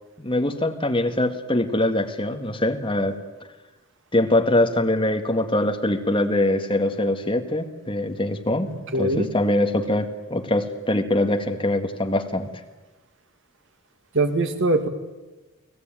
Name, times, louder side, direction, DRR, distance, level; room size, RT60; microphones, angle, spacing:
voice 1, 0.2-3.2 4.1-8.7 9.0-12.5, left 1 dB, 25° left, 6 dB, 1.9 m, -23 dB
voice 2, 8.7-9.3 14.1-14.9, right 2 dB, 60° right, 7 dB, 2.4 m, -22 dB
30.0 x 19.5 x 9.1 m, 1.1 s
head